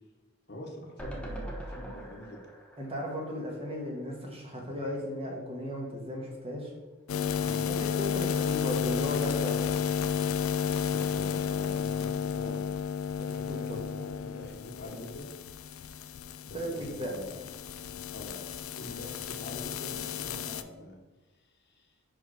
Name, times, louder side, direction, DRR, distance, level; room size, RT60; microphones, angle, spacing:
voice 1, 0.5-2.4 7.4-7.6 10.9-12.8 13.3-13.8 14.2-15.3 16.4-17.4 18.1-21.0 21.4-21.9, left 1 dB, 50° left, 1 dB, 1.2 m, -45 dB
sound 1, 1.0-4.2 4.6-4.7 4.9-5.0, right 1 dB, 5° left, 0.8 m, -42 dB
voice 2, 2.8-6.7 7.8-9.7 13.2-14.1 16.5-17.1, equal, 25° right, -1 dB, 1.4 m, -36 dB
sound 2, 7.1-20.6, left 7 dB, 70° left, 0.4 m, -32 dB
4.9 x 4.8 x 6.1 m, 1.2 s
head